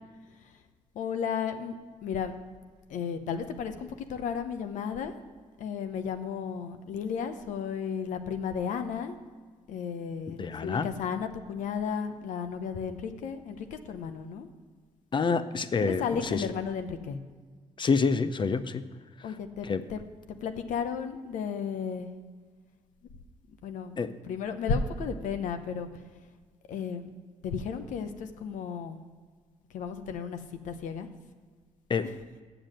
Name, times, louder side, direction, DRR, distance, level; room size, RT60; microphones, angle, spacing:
voice 1, 0.9-1.8 2.0-2.3 2.9-5.1 5.6-9.2 9.7-14.5 15.8-17.2 19.2-20.0 20.3-22.1 23.6-24.0 24.2-25.9 26.7-27.1 27.4-29.0 29.7-30.4 30.6-31.1 32.0-32.2, left 6 dB, 80° left, 8 dB, 0.8 m, -33 dB
voice 2, 10.4-10.9 15.1-16.5 17.8-18.8 19.6-19.8 24.0-24.1 31.9-32.1, left 5 dB, 40° left, 13 dB, 0.6 m, -27 dB
7.5 x 6.9 x 7.6 m, 1.5 s
cardioid pair, 75°, 13 cm